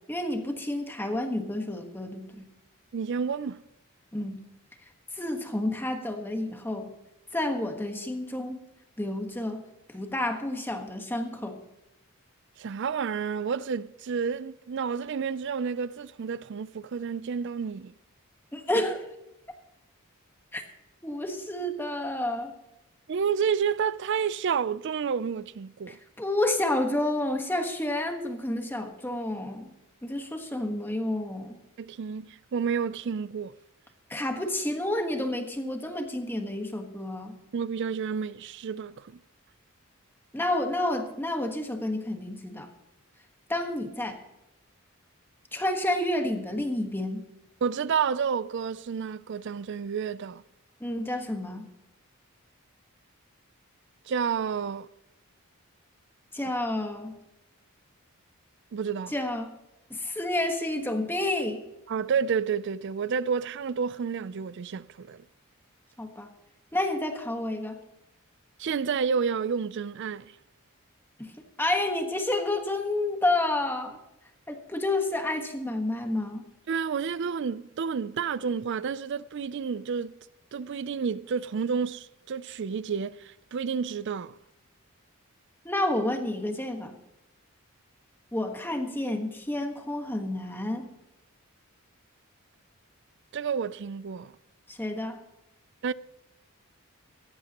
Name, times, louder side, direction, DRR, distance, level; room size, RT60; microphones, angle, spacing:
voice 1, 0.1-2.4 4.1-4.4 5.1-6.9 7.3-8.6 9.0-9.6 9.9-11.6 18.5-19.0 20.5-20.6 21.0-22.5 25.9-29.7 30.0-31.6 34.1-37.4 40.3-42.7 43.5-44.2 45.5-47.3 50.8-51.7 56.3-57.2 59.1-59.5 59.9-61.6 66.0-66.3 66.7-67.8 71.2-71.3 71.6-74.0 74.5-76.4 85.6-87.0 88.3-90.8 94.7-95.2, left 1 dB, 10° left, 1.3 m, -30 dB
voice 2, 2.9-3.6 12.6-17.9 23.1-26.0 31.8-33.5 37.5-39.1 47.6-50.4 54.1-54.9 58.7-59.1 61.9-65.2 68.6-70.3 76.7-80.1 80.5-84.3 93.3-94.3 95.8-95.9, right 6 dB, 55° right, 0.4 m, -30 dB
17.0 x 14.0 x 2.9 m
head